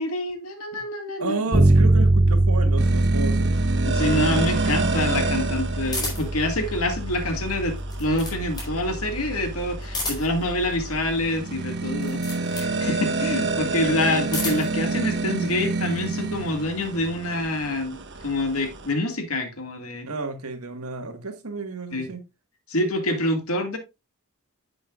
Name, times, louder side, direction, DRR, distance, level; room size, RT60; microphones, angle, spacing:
voice 1, 0.0-1.4 3.9-12.2 12.5-18.0 18.2-20.1 21.9-22.1 22.7-23.8, left 1 dB, 75° left, 2.0 m, -26 dB
voice 2, 1.2-3.5 20.0-22.2, right 3 dB, 80° right, 1.6 m, -32 dB
Bass guitar, 1.5-11.3, right 1 dB, 25° right, 1.2 m, -24 dB
sound 1, 2.8-18.9, right 3 dB, 55° right, 1.3 m, -29 dB
sound 2, 5.9-6.4 7.7-8.8 9.8-10.5 11.9-12.7 14.0-14.8, left 2 dB, 20° left, 4.3 m, -32 dB
10.5 x 7.8 x 2.4 m
head